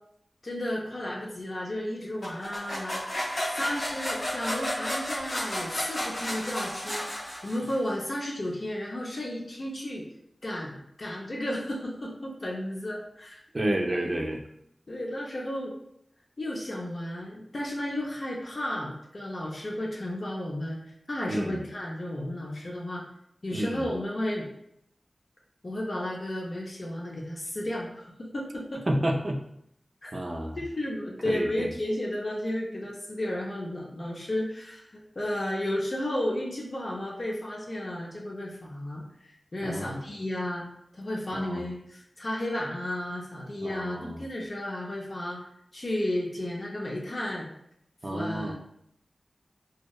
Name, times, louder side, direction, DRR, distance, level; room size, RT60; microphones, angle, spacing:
voice 1, 0.4-10.1 10.4-13.4 13.9-14.3 14.9-15.7 16.4-20.8 21.1-23.0 23.4-24.5 25.6-28.8 30.0-30.1 30.6-40.6 40.9-45.4 45.7-47.5 48.1-48.5, left 1 dB, 50° left, -3 dB, 0.4 m, -33 dB
sound 1, 2.2-7.9, equal, 80° left, 1.0 m, -32 dB
voice 2, 13.5-14.4 21.3-21.6 23.5-23.9 28.9-29.4 30.1-30.6 31.2-31.7 39.6-40.0 41.3-41.6 43.6-44.2 48.0-48.5, right 1 dB, 40° right, 1 dB, 0.3 m, -30 dB
2.7 x 2.1 x 2.2 m, 0.75 s
wide cardioid pair, 95°, 0 cm